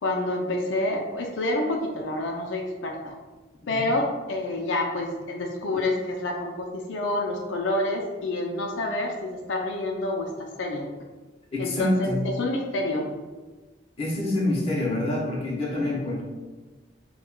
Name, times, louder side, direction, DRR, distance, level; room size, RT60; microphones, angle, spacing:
voice 1, 0.0-3.1 3.7-10.9 11.6-13.1, left 2 dB, 85° left, 1 dB, 0.5 m, -28 dB
voice 2, 11.5-12.2 14.0-16.2, left 1 dB, 35° left, -4 dB, 0.8 m, -26 dB
5.4 x 2.3 x 2.2 m, 1.3 s
head